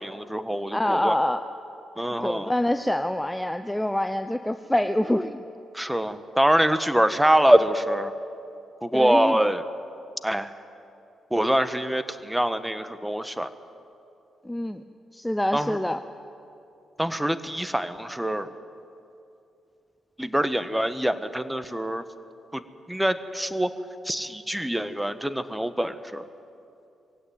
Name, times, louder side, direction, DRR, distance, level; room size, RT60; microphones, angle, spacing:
voice 1, 0.0-1.1 2.0-2.5 5.7-8.1 8.8-9.6 10.2-10.5 11.3-13.5 15.5-15.8 17.0-18.5 20.2-22.0 22.5-22.6 22.9-23.7 24.0-26.2, right 1 dB, 5° right, 11 dB, 1.5 m, -24 dB
voice 2, 0.7-1.5 2.2-5.4 8.9-9.4 14.4-14.8 15.1-16.0, left 1 dB, 10° left, 9 dB, 0.9 m, -26 dB
22.0 x 16.5 x 9.4 m, 2.7 s
hypercardioid pair, 40°, 0 cm